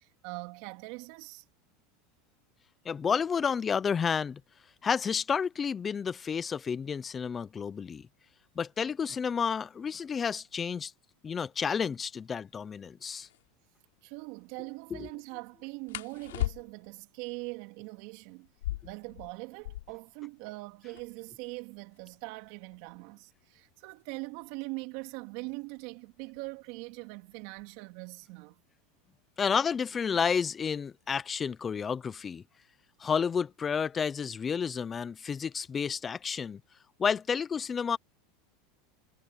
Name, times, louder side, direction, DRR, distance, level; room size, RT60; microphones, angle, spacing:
voice 1, 0.0-1.4 14.0-18.5 18.8-28.6, right 27 dB, 65° right, 3.3 m, -42 dB
voice 2, 2.8-4.4 4.8-8.1 8.6-10.9 11.2-13.3 14.9-15.1 29.4-32.4 33.0-36.6 37.0-38.0, left 6 dB, 25° left, 0.8 m, -30 dB
sound 1, 13.2-13.4 15.9-17.0 18.4-20.1 20.4-20.5 20.7-21.3 21.9-24.5 25.5-25.8 26.2-26.7 27.0-27.7, left 15 dB, 85° left, 3.4 m, -38 dB
supercardioid pair, 115°, 0 cm